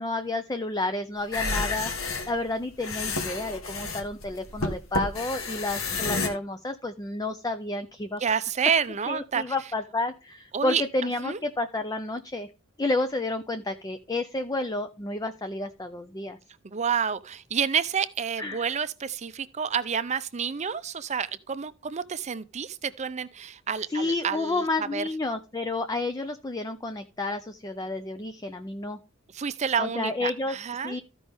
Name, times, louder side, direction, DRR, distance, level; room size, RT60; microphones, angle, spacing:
voice 1, 0.0-8.2 9.1-12.5 12.8-16.4 18.4-18.7 23.9-29.0 29.8-30.6 30.8-31.0, left 2 dB, 20° left, 0.4 m, -30 dB
sound 1, 1.2-6.3, left 3 dB, 85° left, 1.3 m, -30 dB
voice 2, 8.2-9.5 10.5-10.8 11.2-11.4 16.6-24.6 24.9-25.0 29.3-31.0, right 7 dB, 35° right, 0.5 m, -29 dB
14.5 x 5.3 x 3.4 m
head